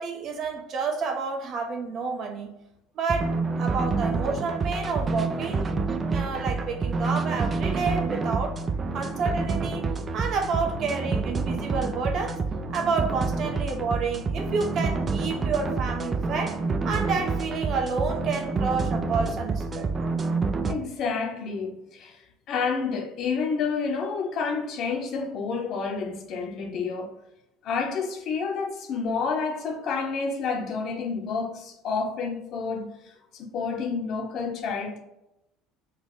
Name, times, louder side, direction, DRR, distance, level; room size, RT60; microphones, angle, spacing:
voice 1, 0.0-2.6 3.0-5.7 6.1-8.5 8.9-9.9 10.1-12.4 12.7-16.6 16.8-19.9, right 4 dB, 50° right, 0.9 m, -29 dB
sound 1, 3.1-20.7, right 4 dB, 30° right, 0.4 m, -28 dB
voice 2, 20.7-27.1 27.6-35.0, left 5 dB, 55° left, 0.9 m, -29 dB
4.0 x 2.3 x 3.8 m
supercardioid pair, 85°, 0 cm